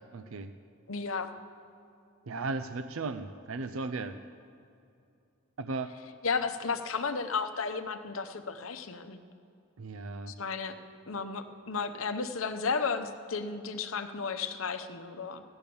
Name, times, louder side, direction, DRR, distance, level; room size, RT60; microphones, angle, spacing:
voice 1, 0.1-0.5 2.3-4.2 5.6-5.9 9.8-10.3, right 3 dB, 85° right, 9 dB, 0.5 m, -36 dB
voice 2, 0.9-1.4 6.2-9.2 10.3-10.8 11.1-15.4, left 5 dB, 85° left, 9 dB, 0.8 m, -33 dB
15.5 x 10.5 x 6.9 m, 2.6 s
head